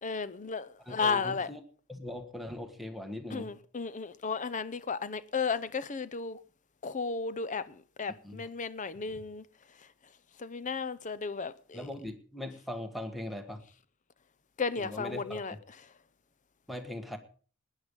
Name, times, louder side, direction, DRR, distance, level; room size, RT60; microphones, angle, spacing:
voice 1, 0.0-1.5 3.3-6.4 6.8-9.5 10.4-11.9 14.6-15.8, left 5 dB, 35° left, 0.7 m, -34 dB
voice 2, 0.9-1.6 1.9-3.5 8.2-8.4 8.9-9.2 11.7-13.6 14.8-15.6 16.7-17.2, left 1 dB, ahead, 1.4 m, -40 dB
18.5 x 9.9 x 5.3 m
head